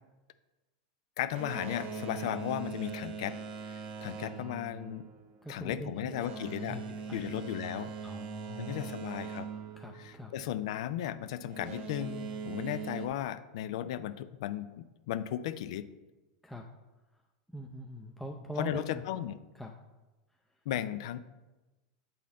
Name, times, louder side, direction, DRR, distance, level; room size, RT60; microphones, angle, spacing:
voice 1, 1.2-3.4 3.7-5.1 5.5-6.8 7.1-7.9 8.6-9.5 10.0-15.9 18.6-19.4 20.7-21.2, left 11 dB, 70° left, 13 dB, 0.4 m, -36 dB
Boat Water vehicle, 1.2-10.7 11.5-13.1, right 5 dB, 45° right, 0.8 m, -41 dB
voice 2, 5.4-6.3 6.7-7.3 8.0-8.9 9.7-10.3 16.4-16.7 17.5-19.0 19.5-19.7, left 1 dB, 5° left, 1 dB, 0.5 m, -42 dB
8.4 x 4.0 x 3.7 m, 1.1 s
hypercardioid pair, 115°, 3 cm